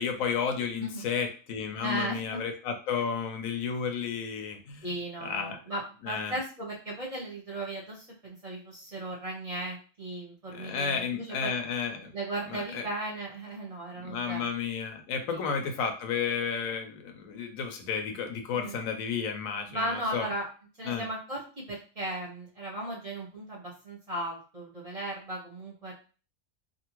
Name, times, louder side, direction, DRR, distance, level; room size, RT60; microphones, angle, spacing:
voice 1, 0.0-4.9 5.2-5.6 6.0-6.4 10.5-12.1 12.5-12.9 14.0-20.3 20.8-21.1, left 6 dB, 90° left, 6 dB, 1.0 m, -32 dB
voice 2, 1.8-2.4 4.8-11.6 12.1-14.5 15.3-15.4 18.5-18.8 19.7-20.5 20.8-25.9, right 1 dB, 35° right, -4 dB, 0.7 m, -36 dB
2.7 x 2.5 x 2.9 m, 0.37 s
omnidirectional pair, 1.4 m